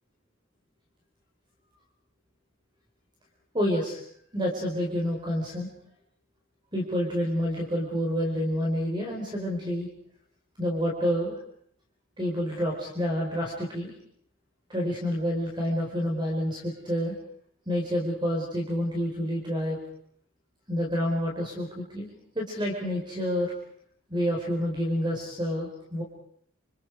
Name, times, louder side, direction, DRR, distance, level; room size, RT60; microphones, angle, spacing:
voice 1, 3.5-4.0 4.3-5.7 6.7-9.9 10.6-11.3 12.2-13.9 14.7-17.1 17.7-19.8 20.7-22.1 22.3-23.5 24.1-26.0, equal, 25° right, -1 dB, 4.8 m, -28 dB
29.0 x 27.0 x 4.9 m, 0.65 s
head